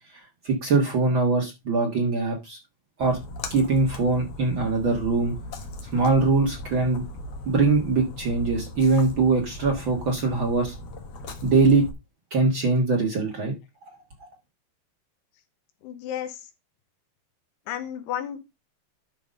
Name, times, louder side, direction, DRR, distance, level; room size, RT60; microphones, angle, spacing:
voice 1, 0.4-2.6 3.0-3.2 3.5-5.3 5.9-7.0 7.4-10.7 11.4-11.8 12.3-13.5, right 3 dB, 70° right, 1.1 m, -22 dB
Splash splatter, 3.0-11.9, left 1 dB, 60° left, 1.9 m, -38 dB
voice 2, 15.8-16.4 17.7-18.4, left 10 dB, 90° left, 3.3 m, -32 dB
11.5 x 3.9 x 5.2 m
omnidirectional pair, 4.7 m